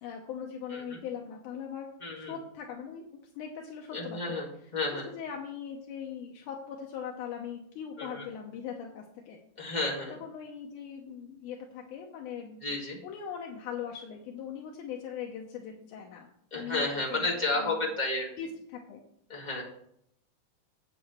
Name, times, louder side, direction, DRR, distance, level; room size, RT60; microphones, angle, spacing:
voice 1, 0.0-3.0 3.4-4.3 5.1-9.4 10.2-12.6 13.0-17.3 17.6-17.8 18.4-19.0, left 7 dB, 80° left, 1 dB, 2.4 m, -40 dB
voice 2, 0.7-1.0 2.0-2.3 3.9-4.5 4.7-5.1 8.0-8.3 9.6-10.2 12.6-13.0 16.5-18.3 19.3-19.6, left 2 dB, 15° left, -2 dB, 1.6 m, -32 dB
8.3 x 7.8 x 4.4 m, 0.72 s
omnidirectional pair, 3.7 m